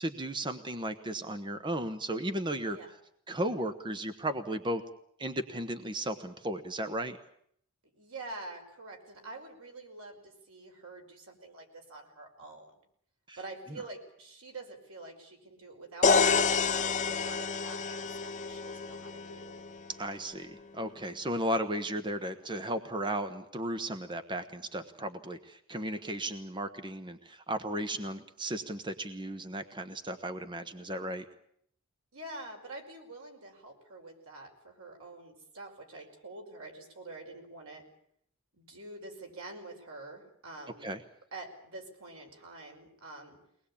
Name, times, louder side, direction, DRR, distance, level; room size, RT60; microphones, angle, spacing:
voice 1, 0.0-2.8 3.3-4.8 5.2-7.2 13.3-13.4 19.9-31.2 40.8-41.0, right 1 dB, 20° right, 8 dB, 1.1 m, -35 dB
voice 2, 7.9-12.7 13.4-19.5 32.1-37.8 38.5-40.9 41.3-43.4, right 2 dB, 85° right, 3 dB, 5.3 m, -46 dB
sound 1, 16.0-19.9, left 5 dB, 35° left, 1.2 m, -28 dB
23.5 x 19.5 x 8.6 m, 0.69 s
head